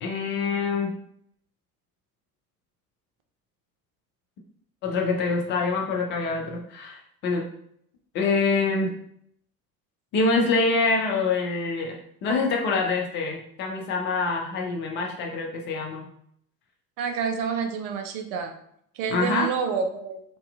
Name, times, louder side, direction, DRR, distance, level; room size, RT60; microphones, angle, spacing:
voice 1, 0.0-0.9 4.8-7.5 8.1-8.9 10.1-12.0 12.2-16.1 19.1-19.5, left 3 dB, 25° left, 1 dB, 0.3 m, -25 dB
voice 2, 17.0-18.5 19.0-20.2, right 6 dB, 50° right, 5 dB, 0.6 m, -28 dB
3.9 x 2.7 x 2.3 m, 0.69 s
figure-of-eight pair, 65°, 48 cm